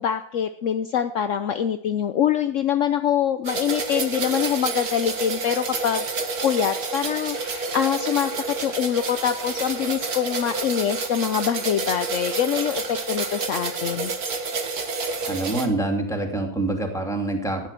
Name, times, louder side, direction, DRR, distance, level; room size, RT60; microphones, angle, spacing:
voice 1, 0.0-14.1, left 9 dB, 65° left, 9 dB, 0.7 m, -24 dB
sound 1, 3.4-15.7, right 4 dB, 55° right, 2.1 m, -29 dB
voice 2, 15.3-17.7, right 2 dB, ahead, 2 dB, 2.7 m, -26 dB
15.0 x 10.5 x 7.6 m, 0.72 s
omnidirectional pair, 2.0 m